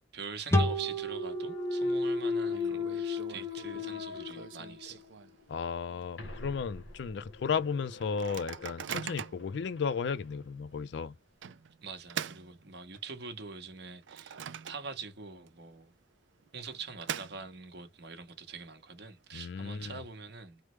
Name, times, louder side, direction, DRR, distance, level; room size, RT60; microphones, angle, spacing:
voice 1, 0.0-5.1 11.8-14.4 14.7-15.9 16.5-20.6, right 5 dB, 60° right, 1.0 m, -44 dB
sound 1, 0.5-3.9, equal, 15° left, 0.6 m, -33 dB
Thump thud, 1.0-5.0 5.5-10.2, left 3 dB, 85° left, 0.9 m, -37 dB
Microwave oven, 1.2-1.8 2.0-2.1 2.5-5.6 6.0-6.1 6.3-6.7 7.2-7.3 8.0-9.5 10.1-10.3 11.4-13.2 13.7-15.2 15.5-15.6 16.4-17.8, right 8 dB, 75° right, 0.4 m, -43 dB
voice 2, 5.5-11.1 19.3-20.0, left 6 dB, 65° left, 0.4 m, -34 dB
3.3 x 2.0 x 3.0 m
head